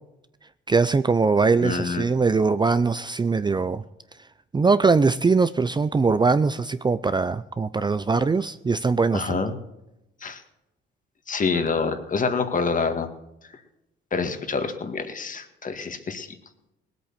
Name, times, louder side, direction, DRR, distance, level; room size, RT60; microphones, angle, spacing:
voice 1, 0.7-3.8 4.5-9.5, right 4 dB, 20° right, 14 dB, 0.5 m, -21 dB
voice 2, 1.6-2.1 9.1-9.5 10.2-10.4 11.3-13.1 14.1-16.3, left 4 dB, 40° left, 8 dB, 1.9 m, -26 dB
19.0 x 8.4 x 7.3 m, 0.90 s
cardioid pair, 90°, 20 cm